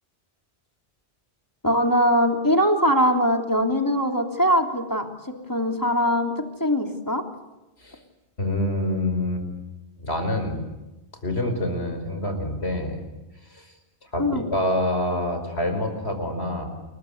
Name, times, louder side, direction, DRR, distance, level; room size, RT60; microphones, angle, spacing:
voice 1, 1.6-7.2 14.2-14.5, equal, 20° left, 3 dB, 3.2 m, -22 dB
voice 2, 8.4-9.5 10.0-10.6 11.2-13.0 13.5-13.7 14.1-16.7, left 1 dB, 75° left, 6 dB, 5.5 m, -26 dB
29.5 x 22.0 x 8.0 m, 1.0 s
omnidirectional pair, 1.1 m